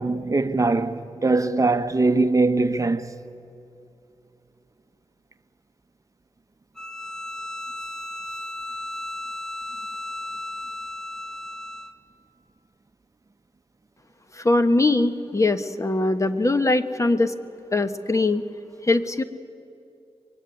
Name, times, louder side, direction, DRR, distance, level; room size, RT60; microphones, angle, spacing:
voice 1, 0.0-3.1, right 3 dB, 30° right, 1.0 m, -21 dB
Bowed string instrument, 6.7-12.0, left 1 dB, 5° left, 1.3 m, -35 dB
voice 2, 14.3-17.3 17.7-18.4 18.8-19.2, left 2 dB, 30° left, 1.3 m, -21 dB
24.0 x 22.5 x 9.5 m
cardioid pair, 60°, 11 cm